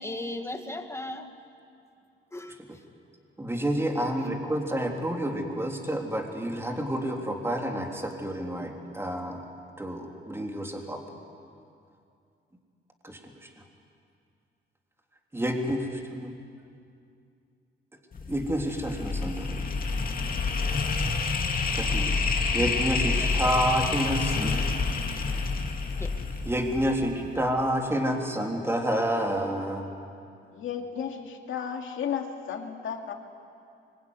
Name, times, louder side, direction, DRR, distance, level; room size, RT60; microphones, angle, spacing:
voice 1, 0.0-1.3 2.3-2.8 4.0-4.1 23.2-23.5 25.9-26.2, left 1 dB, 15° left, 6 dB, 2.0 m, -37 dB
voice 2, 3.4-9.4 9.8-11.0 13.0-13.2 15.3-16.3 18.3-19.6 21.8-22.1 22.5-24.6 26.4-29.9, equal, 10° right, 1 dB, 3.4 m, -29 dB
sound 1, 18.1-27.3, left 4 dB, 45° left, 2.4 m, -28 dB
voice 3, 30.5-33.1, left 7 dB, 75° left, 3 dB, 2.5 m, -33 dB
24.5 x 23.0 x 9.8 m, 2.5 s
cardioid pair, 105°, 20 cm